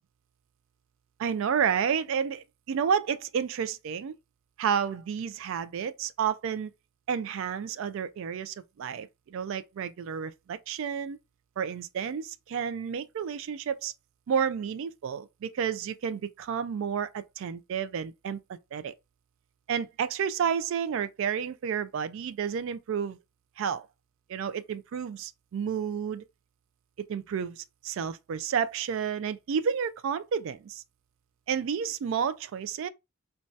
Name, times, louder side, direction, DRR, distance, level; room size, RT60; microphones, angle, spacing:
voice 1, 1.2-4.2 4.6-6.7 7.1-11.2 11.6-13.9 14.3-18.4 18.7-18.9 19.7-23.2 23.6-23.9 24.3-26.2 27.1-30.8 31.5-32.9, right 7 dB, 60° right, 0.3 m, -31 dB
2.6 x 2.3 x 3.1 m
head